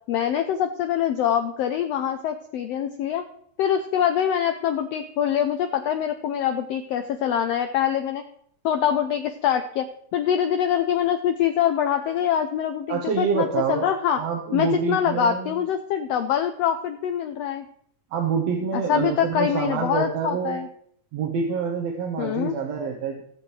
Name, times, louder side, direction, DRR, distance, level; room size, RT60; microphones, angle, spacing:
voice 1, 0.1-3.2 3.6-8.2 8.6-9.9 10.1-14.2 14.5-17.6 18.7-20.7 22.2-22.5, left 9 dB, 90° left, 7 dB, 1.4 m, -24 dB
voice 2, 12.9-15.6 18.1-20.6 21.1-23.2, right 5 dB, 65° right, 1 dB, 2.1 m, -27 dB
18.0 x 7.4 x 3.2 m, 0.67 s
omnidirectional pair, 3.5 m